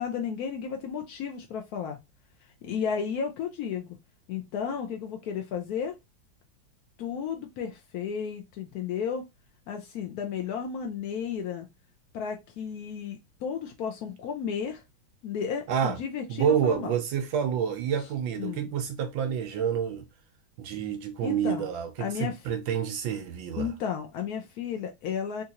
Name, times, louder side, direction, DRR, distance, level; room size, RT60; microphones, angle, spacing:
voice 1, 0.0-2.0 2.6-4.0 4.3-5.9 7.0-9.2 9.7-11.7 12.1-14.8 15.2-16.9 18.4-18.7 21.2-21.6 22.0-22.4 23.6-25.4, left 7 dB, 80° left, 0.8 m, -33 dB
voice 2, 15.7-16.0 16.3-20.0 20.6-23.7, right 8 dB, 75° right, 1.3 m, -28 dB
3.9 x 2.6 x 2.8 m
omnidirectional pair, 2.3 m